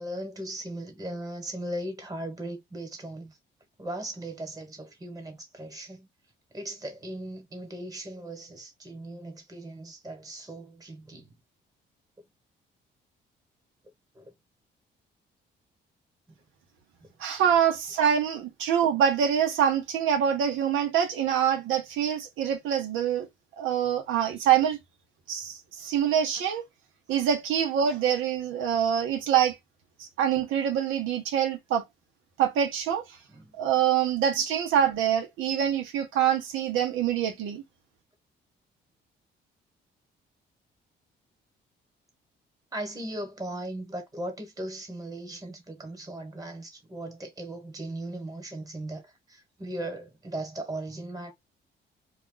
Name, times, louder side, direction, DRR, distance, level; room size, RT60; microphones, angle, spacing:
voice 1, 0.0-3.4 3.8-6.1 6.5-11.4 14.1-14.3 33.3-33.5 42.7-51.3, right 1 dB, 20° right, 1.2 m, -38 dB
voice 2, 17.2-23.3 23.6-24.8 25.3-26.6 27.1-29.6 30.0-31.8 32.4-33.0 33.6-37.6, right 9 dB, 85° right, 0.7 m, -25 dB
2.4 x 2.2 x 3.7 m
cardioid pair, 90°, 20 cm